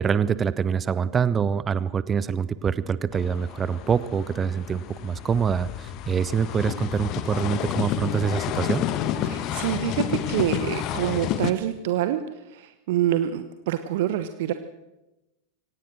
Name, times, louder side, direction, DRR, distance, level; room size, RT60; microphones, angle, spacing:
voice 1, 0.0-8.9, right 6 dB, 20° right, 17 dB, 0.8 m, -25 dB
sound 1, 3.1-11.5, left 10 dB, 40° left, 1.4 m, -30 dB
voice 2, 9.2-14.5, right 12 dB, 50° right, 10 dB, 1.1 m, -26 dB
24.5 x 18.0 x 6.4 m, 1.0 s
figure-of-eight pair, 90°, 0 cm